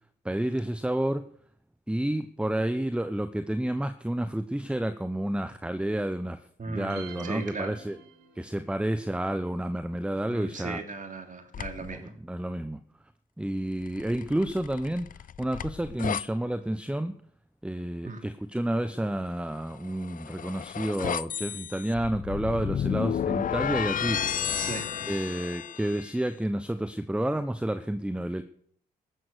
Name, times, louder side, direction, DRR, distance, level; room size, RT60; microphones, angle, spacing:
voice 1, 0.2-1.2 1.9-6.4 6.7-8.0 8.3-10.8 11.8-12.8 13.4-17.1 17.6-24.6 25.1-28.4, right 1 dB, 5° right, 11 dB, 1.0 m, -30 dB
voice 2, 6.6-7.8 10.3-12.1 18.0-18.2 24.5-24.9, right 3 dB, 45° right, 6 dB, 3.0 m, -37 dB
sound 1, 6.9-8.7, right 7 dB, 85° right, 1.7 m, -47 dB
sound 2, 11.5-12.0 13.9-16.3 19.8-26.1, left 9 dB, 45° left, 0.5 m, -32 dB
14.0 x 11.5 x 6.8 m, 0.62 s
hypercardioid pair, 45°, 19 cm